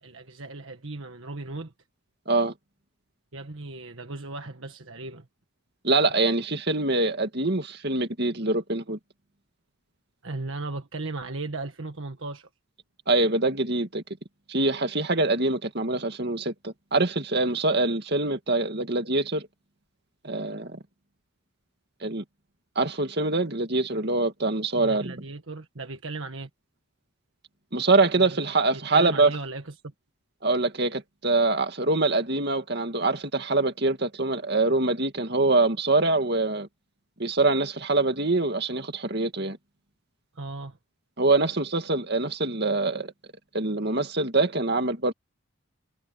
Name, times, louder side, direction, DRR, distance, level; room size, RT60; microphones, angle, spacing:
voice 1, 0.0-1.7 3.3-5.3 10.2-12.5 24.7-26.5 28.2-29.9 40.3-40.8, right 3 dB, 65° right, 1.6 m, -37 dB
voice 2, 5.8-9.0 13.1-14.0 14.5-19.5 20.2-20.8 22.0-22.2 22.8-25.1 27.7-29.3 30.4-36.7 37.2-39.6 41.2-43.1 43.5-45.1, right 2 dB, 50° right, 2.3 m, -24 dB
head